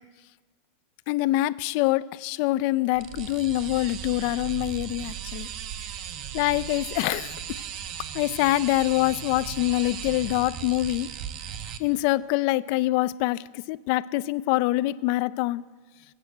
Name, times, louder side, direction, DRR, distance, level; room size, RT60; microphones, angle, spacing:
voice 1, 1.1-5.5 6.3-7.3 8.1-11.1 11.8-15.6, left 17 dB, 45° left, 0.4 m, -25 dB
sound 1, 2.9-11.8, right 9 dB, 35° right, 0.8 m, -37 dB
20.5 x 8.8 x 7.9 m
supercardioid pair, 170°, 0 cm